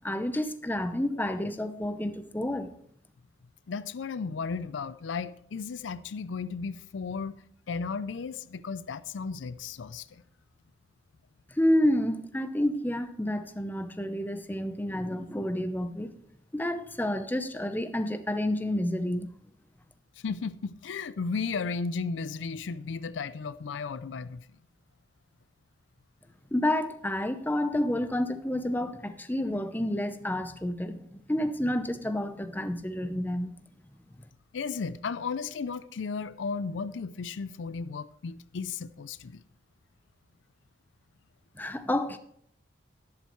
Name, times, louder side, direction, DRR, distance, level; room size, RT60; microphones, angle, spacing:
voice 1, 0.0-2.7 11.6-16.1 16.5-19.3 26.5-33.5 41.6-42.2, left 1 dB, 10° left, 0.7 m, -29 dB
voice 2, 3.7-7.4 7.7-10.2 20.2-24.4 34.5-39.4, left 5 dB, 80° left, 0.5 m, -34 dB
11.5 x 11.0 x 3.1 m
head